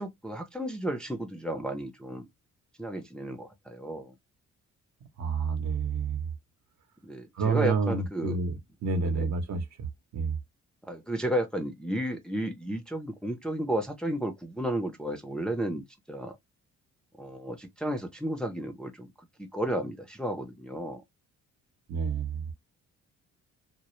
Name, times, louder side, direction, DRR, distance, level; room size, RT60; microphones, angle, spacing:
voice 1, 0.0-2.3 2.8-4.1 7.0-8.4 9.0-9.3 10.8-16.4 17.2-21.0, right 1 dB, 5° left, 0.4 m, -33 dB
voice 2, 5.2-6.3 7.3-8.5 8.8-10.4 21.9-22.5, right 5 dB, 65° right, 0.8 m, -29 dB
2.0 x 2.0 x 3.0 m
cardioid pair, 90°, 30 cm